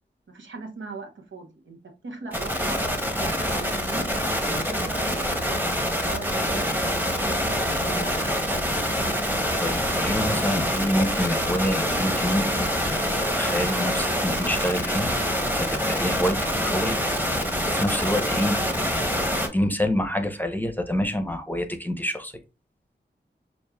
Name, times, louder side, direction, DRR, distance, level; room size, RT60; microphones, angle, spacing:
voice 1, 0.3-1.8 2.0-4.1 4.6-5.6 5.9-6.9 7.2-8.4, right 4 dB, 90° right, 0.9 m, -39 dB
sound 1, 2.3-19.5, equal, 10° right, 1.0 m, -25 dB
voice 2, 9.6-15.1 15.5-17.0 17.7-22.3, equal, 10° left, 0.7 m, -27 dB
6.2 x 2.5 x 2.2 m
wide cardioid pair, 60°, 19 cm